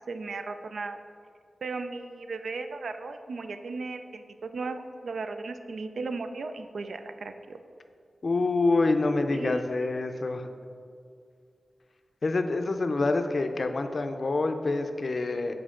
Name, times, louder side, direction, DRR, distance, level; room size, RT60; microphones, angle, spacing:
voice 1, 0.1-1.0 1.6-7.6 9.3-9.8, right 3 dB, 85° right, 8 dB, 0.3 m, -36 dB
voice 2, 8.2-10.5 12.2-15.5, left 3 dB, 55° left, 7 dB, 0.4 m, -26 dB
7.3 x 4.5 x 3.7 m, 2.3 s
wide cardioid pair, 75°, 0 cm